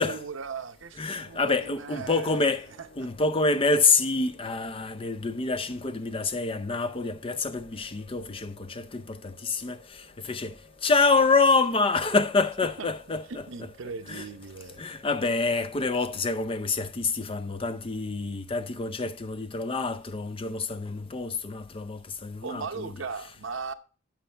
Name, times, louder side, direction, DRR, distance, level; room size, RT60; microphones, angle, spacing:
voice 1, 0.0-2.5 3.0-3.1 12.8-12.9 13.3-14.9 22.4-23.7, right 4 dB, 70° right, 0.7 m, -38 dB
voice 2, 1.0-13.4 14.1-14.2 14.8-23.0, left 3 dB, 25° left, 0.5 m, -27 dB
sound 1, 1.1-16.9, left 2 dB, 50° left, 1.5 m, -56 dB
11.5 x 6.6 x 3.4 m
head